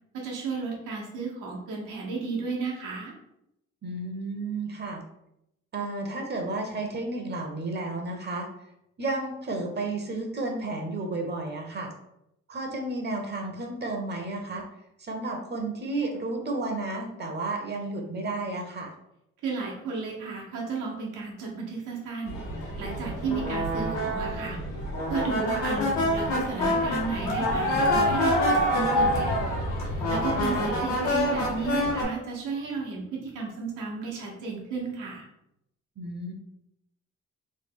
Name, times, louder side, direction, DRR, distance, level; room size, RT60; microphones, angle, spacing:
voice 1, 0.1-3.1 19.4-22.4 22.8-24.6 25.1-29.5 30.1-35.3, right 4 dB, 90° right, -2 dB, 1.0 m, -33 dB
voice 2, 3.8-5.0 5.7-8.5 9.0-11.9 12.5-14.6 15.0-18.9 30.4-30.7 36.0-36.3, right 2 dB, 35° right, 2 dB, 0.7 m, -32 dB
sound 1, 22.3-32.0, left 1 dB, 80° left, 1.1 m, -26 dB
3.2 x 2.2 x 3.6 m, 0.81 s
cardioid pair, 90°, 30 cm